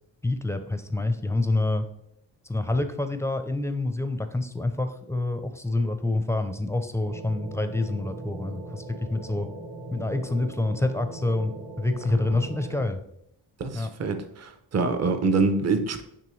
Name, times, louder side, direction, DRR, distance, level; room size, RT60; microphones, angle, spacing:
voice 1, 0.2-1.9 2.4-9.5 9.9-13.0 13.7-13.9, left 2 dB, 5° left, 8 dB, 0.5 m, -27 dB
sound 1, 7.0-12.8, right 2 dB, 75° right, 1.1 m, -40 dB
voice 2, 13.6-16.0, right 4 dB, 40° right, 9 dB, 0.7 m, -25 dB
9.0 x 3.3 x 3.1 m, 0.76 s
cardioid pair, 100°, 42 cm